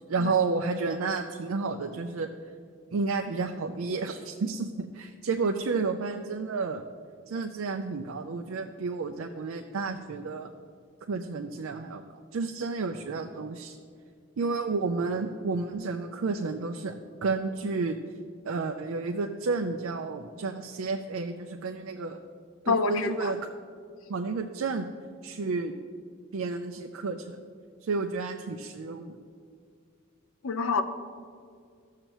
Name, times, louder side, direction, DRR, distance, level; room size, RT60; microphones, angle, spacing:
voice 1, 0.1-2.3 2.9-6.8 7.3-10.5 11.1-12.0 12.3-13.8 14.4-16.9 17.2-18.0 18.5-22.2 22.6-23.4 24.1-24.9 25.2-25.7 26.3-27.4 27.8-29.2, right 4 dB, 85° right, 5 dB, 0.5 m, -31 dB
voice 2, 22.7-23.3 30.4-30.8, left 4 dB, 85° left, 9 dB, 0.6 m, -26 dB
15.0 x 6.6 x 3.0 m, 2.2 s
head